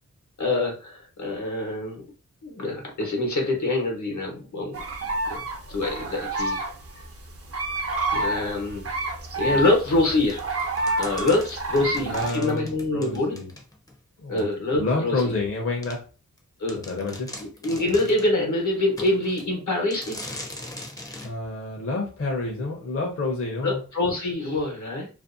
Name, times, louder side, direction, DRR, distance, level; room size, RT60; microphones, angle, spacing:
voice 1, 0.4-2.0 2.4-4.8 5.3-5.4 5.7-6.6 8.1-8.9 9.4-10.4 11.0-13.4 14.3-15.3 16.6-16.8 17.4-20.2 23.6-25.1, left 2 dB, 75° left, 1 dB, 0.9 m, -25 dB
sound 1, 4.7-12.3, right 2 dB, 50° right, 0.5 m, -29 dB
sound 2, 10.3-13.9 14.4-14.5 15.2-15.3 15.8-16.0 16.4-16.5 16.7-18.3 19.0-19.5 19.9-21.3, left 1 dB, 10° left, 0.5 m, -40 dB
voice 2, 11.8-13.5 14.2-14.5 14.8-16.0 16.9-17.3 21.2-23.8, left 3 dB, 50° left, -1 dB, 0.7 m, -29 dB
2.5 x 2.2 x 2.4 m, 0.34 s
wide cardioid pair, 85°, 30 cm